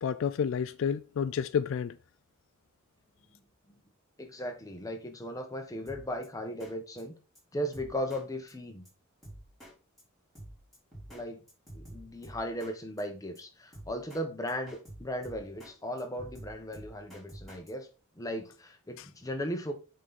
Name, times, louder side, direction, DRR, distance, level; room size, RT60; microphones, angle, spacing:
voice 1, 0.0-2.0 19.0-19.1, left 7 dB, 65° left, 0.3 m, -30 dB
voice 2, 4.2-7.1 7.5-8.8 11.1-11.4 11.7-17.9 18.1-19.7, equal, 15° left, 1.0 m, -37 dB
Drum kit, 5.9-6.3 6.6-6.7 7.0-7.1 7.4-7.5 7.7-8.2 8.5-8.6 8.9-9.0 9.2-9.7 10.0-10.1 10.4-11.2 11.5-12.7 13.0-13.1 13.4-13.5 13.7-14.2 14.5-15.7 16.0-17.7, right 1 dB, ahead, 3.7 m, -48 dB
7.4 x 3.9 x 4.0 m
head